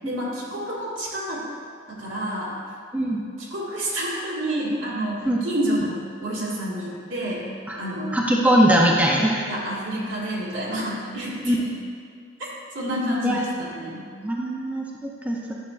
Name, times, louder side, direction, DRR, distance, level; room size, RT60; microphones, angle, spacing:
voice 1, 0.0-1.4 1.9-2.6 3.4-7.5 7.8-8.3 9.1-11.7 12.7-14.1, right 1 dB, 80° right, -6 dB, 2.0 m, -29 dB
voice 2, 8.1-9.4 11.4-11.6 13.2-13.4 14.2-15.5, right 1 dB, 10° right, -3 dB, 0.6 m, -21 dB
10.5 x 6.8 x 2.5 m, 2.2 s
head